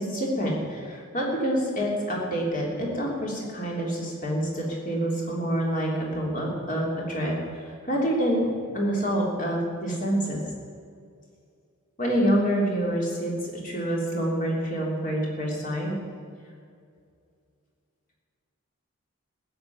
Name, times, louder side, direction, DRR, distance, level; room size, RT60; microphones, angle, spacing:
voice 1, 0.0-8.5 8.7-10.4 12.0-13.3 13.6-15.9, right 1 dB, 40° left, -2 dB, 3.2 m, -27 dB
15.5 x 6.8 x 9.3 m, 2.3 s
head